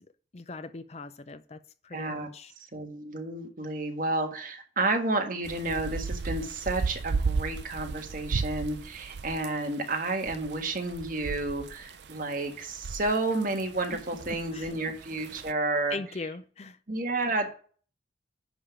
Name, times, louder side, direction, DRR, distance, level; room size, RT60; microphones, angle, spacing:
voice 1, 0.3-2.5 13.9-14.7 15.9-16.8, left 3 dB, 35° left, 0.5 m, -40 dB
voice 2, 1.9-2.3 2.7-16.0 16.9-17.5, right 2 dB, 50° right, 1.5 m, -31 dB
sound 1, 5.4-15.5, right 4 dB, 75° right, 0.5 m, -35 dB
10.0 x 3.6 x 6.9 m
head